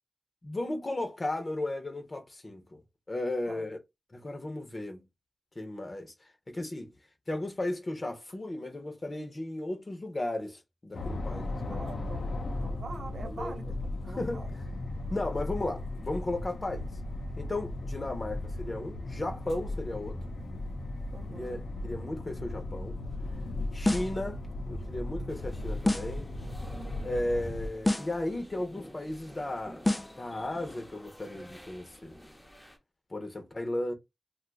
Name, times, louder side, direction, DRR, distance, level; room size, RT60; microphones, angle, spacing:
voice 1, 0.4-2.8 3.1-3.8 4.1-5.0 5.6-6.9 7.3-11.8 13.2-13.7 14.2-14.6 15.1-16.9 17.4-20.2 21.3-23.0 23.7-24.4 24.7-26.3 27.0-29.8 30.2-32.2 33.1-33.9, left 1 dB, 45° left, 0.8 m, -35 dB
sound 1, 10.9-27.7, left 2 dB, 85° left, 0.6 m, -36 dB
voice 2, 11.3-12.3 12.6-14.5 21.1-21.6, right 3 dB, 80° right, 0.7 m, -44 dB
sound 2, 23.8-24.2 25.9-26.2 27.8-28.2 29.9-30.2, left 1 dB, 25° left, 0.4 m, -28 dB
sound 3, 25.3-32.8, equal, 10° left, 0.9 m, -50 dB
2.7 x 2.3 x 3.9 m
cardioid pair, 50°, 0 cm